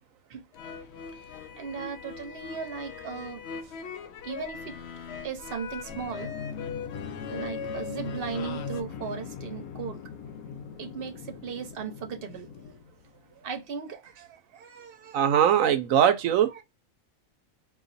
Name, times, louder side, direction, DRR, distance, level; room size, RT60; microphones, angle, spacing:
sound 1, 0.5-8.8, left 5 dB, 65° left, 0.7 m, -40 dB
voice 1, 1.6-3.4 4.2-4.8 5.1-6.3 7.3-10.0 10.8-12.7 13.4-15.2 16.5-16.6, right 6 dB, 50° right, 0.9 m, -37 dB
sound 2, 5.9-13.4, left 6 dB, 85° left, 1.0 m, -40 dB
voice 2, 15.1-16.5, right 9 dB, 75° right, 1.0 m, -21 dB
4.0 x 2.6 x 2.5 m
omnidirectional pair, 1.5 m